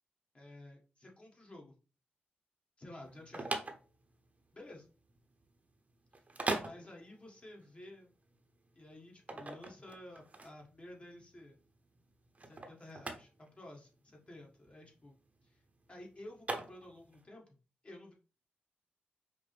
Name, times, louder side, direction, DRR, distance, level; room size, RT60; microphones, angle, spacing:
voice 1, 0.3-1.7 2.8-3.6 4.5-4.9 6.6-8.1 8.7-11.6 12.5-15.2 15.4-15.6 15.9-17.5 17.8-18.1, left 1 dB, 30° left, -1 dB, 1.6 m, -52 dB
sound 1, 3.0-17.2, right 2 dB, 35° right, 0.8 m, -42 dB
5.1 x 2.0 x 3.3 m, 0.35 s
cardioid pair, 50°, 4 cm